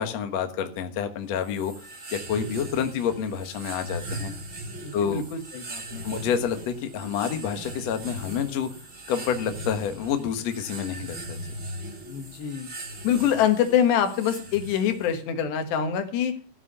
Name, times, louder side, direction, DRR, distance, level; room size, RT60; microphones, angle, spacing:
voice 1, 0.0-1.7 2.1-4.3 4.9-5.2 6.0-8.7 9.1-11.4, left 8 dB, 60° left, 7 dB, 1.9 m, -28 dB
sound 1, 1.3-15.2, right 1 dB, 45° right, 0.9 m, -39 dB
voice 2, 4.8-6.1 12.1-12.7 13.0-16.3, left 9 dB, 85° left, 7 dB, 3.7 m, -25 dB
14.0 x 7.4 x 6.8 m, 0.40 s
omnidirectional pair, 4.8 m